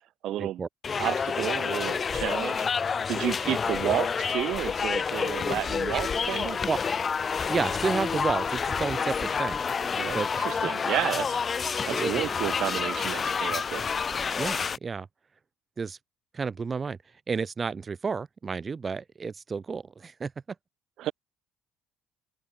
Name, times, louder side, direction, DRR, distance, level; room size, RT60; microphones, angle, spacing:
voice 1, 0.2-0.6 1.0-6.6 10.0-10.2 10.4-13.8 21.0-21.1, right 13 dB, 65° right, 3.6 m, -31 dB
sound 1, 0.8-14.8, left 6 dB, 35° left, 1.1 m, -29 dB
voice 2, 7.5-9.6 10.1-10.3 11.9-12.1 14.4-15.1 15.8-16.0 16.3-17.0 17.3-20.3, right 5 dB, 30° right, 2.4 m, -31 dB
open air
supercardioid pair, 90°, 0 cm